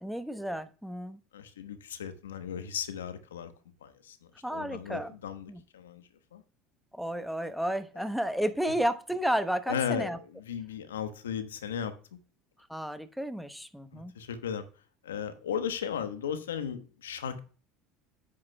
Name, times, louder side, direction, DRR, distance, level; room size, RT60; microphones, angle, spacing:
voice 1, 0.0-1.2 4.4-5.1 5.5-5.6 6.9-10.2 12.7-14.2, equal, ahead, 0.9 m, -32 dB
voice 2, 1.3-3.5 3.8-4.2 4.5-6.0 6.3-6.4 7.9-8.0 9.7-12.2 13.9-14.7 15.0-17.4, left 8 dB, 90° left, 1.0 m, -36 dB
9.6 x 9.5 x 2.2 m
hypercardioid pair, 80°, 0 cm